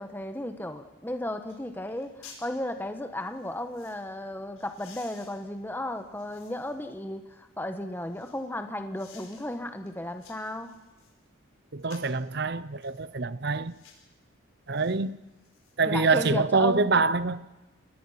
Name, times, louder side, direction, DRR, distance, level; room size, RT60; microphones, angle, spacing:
voice 1, 0.0-10.7 15.9-16.9, left 1 dB, 10° left, 1.3 m, -34 dB
sound 1, 1.5-1.6 1.9-2.5 3.2-4.0 4.6-6.8 7.3-8.5 8.9-9.5 9.9-11.2 11.8-12.2 12.8-13.0 13.6-14.1 14.7-14.9 15.3-16.1 16.5-16.6, left 6 dB, 90° left, 5.6 m, -54 dB
voice 2, 11.7-13.8 14.7-15.2 15.8-17.5, right 4 dB, 50° right, 0.7 m, -25 dB
28.5 x 19.5 x 5.8 m
head